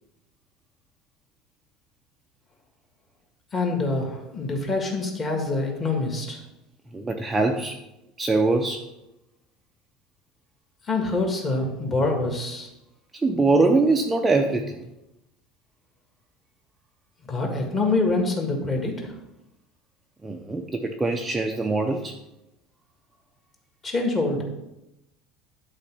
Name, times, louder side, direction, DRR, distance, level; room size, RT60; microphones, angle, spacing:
voice 1, 3.5-6.4 10.9-12.7 17.3-19.1 23.8-24.4, left 3 dB, 25° left, 1 dB, 1.7 m, -25 dB
voice 2, 6.9-7.8 8.2-8.8 13.1-14.9 20.2-22.2, right 3 dB, 10° right, 2 dB, 0.5 m, -23 dB
11.0 x 4.0 x 6.0 m, 0.92 s
cardioid pair, 160°, 0 cm